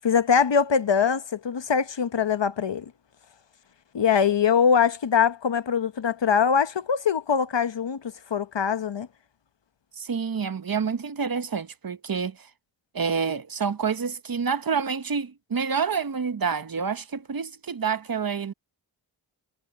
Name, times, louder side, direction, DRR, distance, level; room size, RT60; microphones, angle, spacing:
voice 1, 0.0-2.9 3.9-9.1, left 7 dB, 65° left, 1.0 m, -23 dB
voice 2, 10.0-12.5 12.9-18.5, right 6 dB, 45° right, 0.9 m, -28 dB
wide cardioid pair, 75°, 48 cm